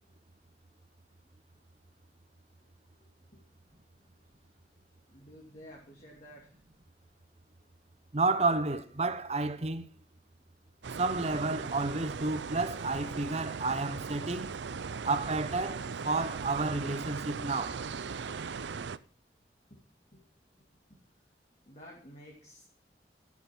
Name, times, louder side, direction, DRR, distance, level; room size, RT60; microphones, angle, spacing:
voice 1, 2.9-3.4 4.0-4.6 5.1-6.6 14.8-15.1 19.7-19.8 20.1-20.2 20.5-21.0 21.6-22.7, equal, 40° left, 2.9 m, -54 dB
voice 2, 8.1-9.9 10.9-14.6 15.0-17.8, right 3 dB, 35° right, 0.9 m, -31 dB
sound 1, 10.8-19.0, right 5 dB, 90° right, 0.5 m, -38 dB
13.0 x 8.4 x 6.1 m
head